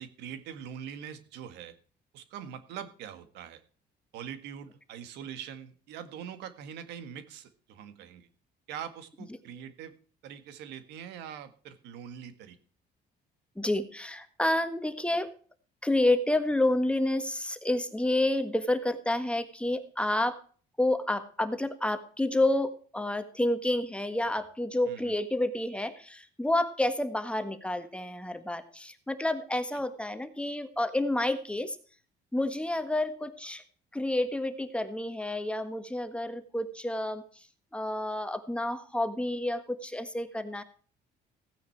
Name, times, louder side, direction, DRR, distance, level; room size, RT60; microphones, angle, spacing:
voice 1, 0.0-1.7 2.1-3.6 4.1-8.3 8.7-9.9 10.2-12.6 24.9-25.1 29.7-29.8, right 8 dB, 90° right, 10 dB, 1.8 m, -43 dB
voice 2, 13.6-15.3 15.8-20.4 20.8-31.8 32.3-33.6 33.9-37.5 37.7-40.6, left 1 dB, 5° left, 9 dB, 1.5 m, -29 dB
16.0 x 9.4 x 4.6 m, 0.42 s
cardioid pair, 110°, 17 cm